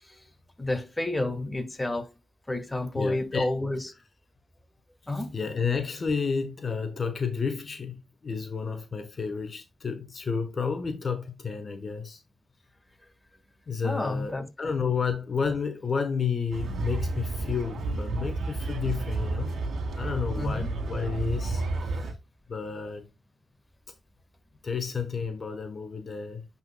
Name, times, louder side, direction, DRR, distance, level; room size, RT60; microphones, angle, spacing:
voice 1, 0.6-2.1 2.5-3.8 5.1-5.4 13.8-14.4 20.3-20.7, left 2 dB, 15° left, 1.5 m, -30 dB
voice 2, 2.9-3.5 5.3-12.2 13.7-19.5 20.0-22.1 22.5-23.1 24.6-26.4, left 5 dB, 55° left, 1.0 m, -31 dB
sound 1, 16.5-22.1, right 3 dB, 75° right, 1.7 m, -31 dB
11.0 x 4.2 x 2.2 m
cardioid pair, 60°, 0 cm